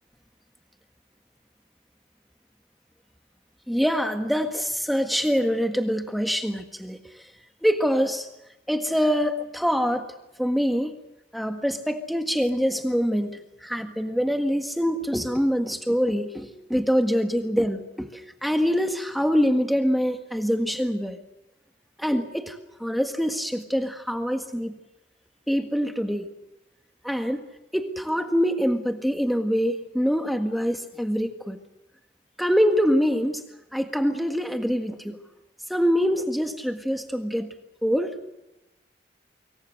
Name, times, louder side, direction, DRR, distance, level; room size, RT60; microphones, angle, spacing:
voice 1, 3.7-7.0 7.6-8.3 8.7-10.1 10.4-10.9 11.3-21.2 22.0-24.7 25.5-26.3 27.0-27.4 27.7-31.6 32.4-33.4 33.7-35.2 35.7-37.5 37.8-38.2, equal, ahead, 6 dB, 1.6 m, -25 dB
25.5 x 23.5 x 6.5 m, 0.96 s
head